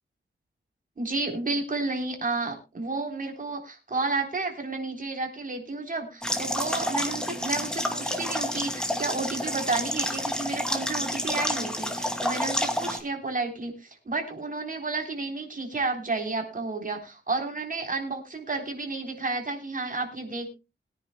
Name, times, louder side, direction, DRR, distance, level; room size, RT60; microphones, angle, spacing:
voice 1, 1.0-20.5, right 3 dB, 45° right, 3 dB, 3.8 m, -31 dB
sound 1, 6.2-13.0, left 1 dB, 5° left, 2.4 m, -29 dB
22.5 x 9.7 x 2.2 m, 0.27 s
wide cardioid pair, 105°, 20 cm